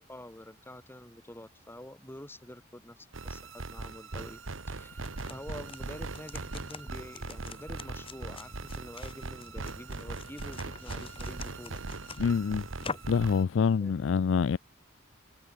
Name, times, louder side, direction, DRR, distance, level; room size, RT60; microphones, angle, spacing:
voice 1, 0.0-4.4 4.7-11.8 13.8-13.9, left 1 dB, 10° left, 3.9 m, -47 dB
sound 1, 3.1-13.4, right 3 dB, 75° right, 1.4 m, -40 dB
sound 2, 4.9-13.2, left 4 dB, 25° left, 2.2 m, -46 dB
voice 2, 12.2-12.6 13.1-14.6, left 6 dB, 65° left, 0.4 m, -26 dB
head